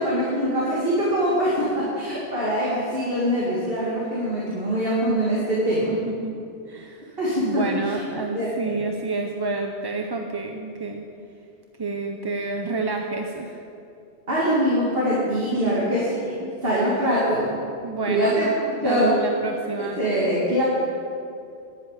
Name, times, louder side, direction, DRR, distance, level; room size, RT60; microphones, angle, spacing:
voice 1, 0.0-5.9 7.2-7.7 8.3-8.7 14.3-16.3 16.6-17.5 18.1-19.2 20.0-20.6, equal, 55° right, -7 dB, 2.5 m, -23 dB
voice 2, 6.7-7.2 7.4-11.0 11.8-13.6 15.5-15.7 16.4-16.5 17.8-18.4 18.8-20.0, right 3 dB, 30° right, 3 dB, 0.5 m, -29 dB
11.0 x 7.7 x 8.9 m, 2.5 s
omnidirectional pair, 1.2 m